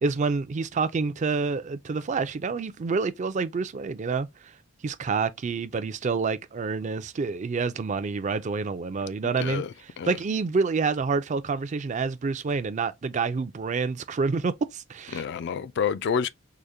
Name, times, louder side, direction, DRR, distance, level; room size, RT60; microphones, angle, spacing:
voice 1, 0.0-4.5 4.8-9.6 10.0-15.2, right 4 dB, 35° right, 0.4 m, -28 dB
voice 2, 9.4-10.2 15.1-16.3, left 6 dB, 55° left, 0.3 m, -29 dB
4.8 x 2.1 x 2.7 m
head